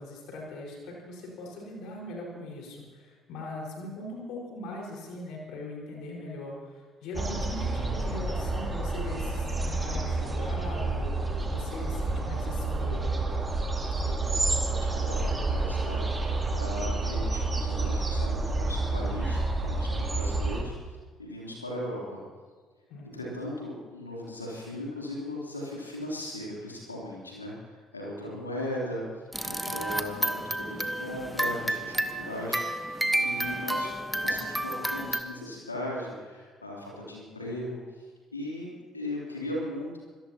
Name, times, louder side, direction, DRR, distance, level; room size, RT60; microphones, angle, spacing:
voice 1, 0.0-11.0 11.4-13.2 22.9-23.4, left 2 dB, 60° left, -2 dB, 5.0 m, -40 dB
sound 1, 7.1-20.6, right 2 dB, 20° right, 3.0 m, -29 dB
voice 2, 14.1-20.7 21.2-22.2 23.1-29.0 29.4-33.9 34.2-37.8 38.3-40.0, left 1 dB, 85° left, -4 dB, 3.3 m, -38 dB
sound 2, 29.3-35.2, right 1 dB, 5° right, 1.3 m, -30 dB
25.0 x 17.5 x 3.0 m, 1.4 s
figure-of-eight pair, 50°, 0 cm